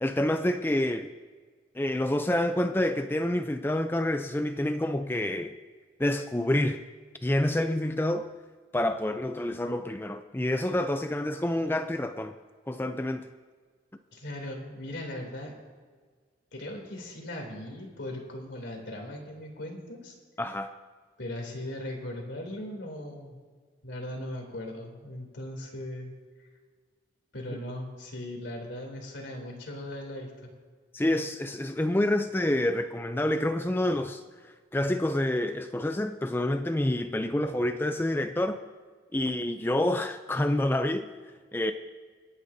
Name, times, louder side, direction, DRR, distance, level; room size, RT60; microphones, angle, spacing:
voice 1, 0.0-1.1 1.7-5.5 6.0-6.8 7.2-8.3 8.7-12.3 12.7-13.3 20.4-20.7 30.9-34.2 34.7-38.6 39.1-41.1 41.5-41.7, left 1 dB, 10° left, 0.4 m, -28 dB
voice 2, 14.1-15.5 16.5-20.2 21.2-23.4 23.8-26.1 27.3-30.5, left 1 dB, 75° left, 3.0 m, -38 dB
27.0 x 10.0 x 2.7 m
head